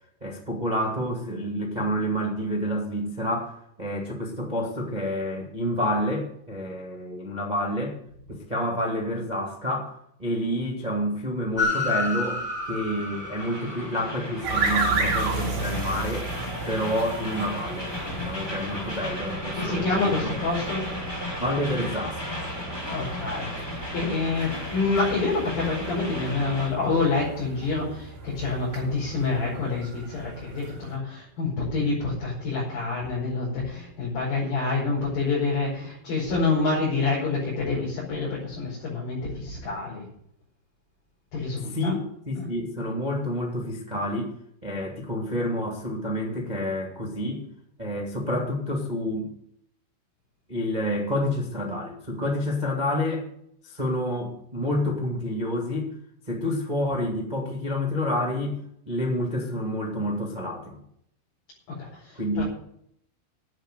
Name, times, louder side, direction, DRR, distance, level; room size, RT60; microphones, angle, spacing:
voice 1, 0.2-8.0 8.3-12.4 12.7-16.3 16.6-20.1 21.4-22.4 41.7-44.3 44.6-47.5 47.8-49.3 50.5-53.3 53.6-55.9 56.3-58.6 58.8-60.8 62.1-62.4, left 1 dB, 85° right, -1 dB, 0.4 m, -29 dB
Train, 11.6-26.7, left 2 dB, 10° left, 1.1 m, -33 dB
sound 1, 14.4-31.0, right 4 dB, 60° right, 4.7 m, -34 dB
voice 2, 19.5-20.8 22.9-40.0 41.3-41.9 42.3-42.4 61.7-62.4, left 3 dB, 45° left, -6 dB, 6.4 m, -27 dB
10.5 x 8.8 x 9.2 m, 0.71 s
omnidirectional pair, 5.5 m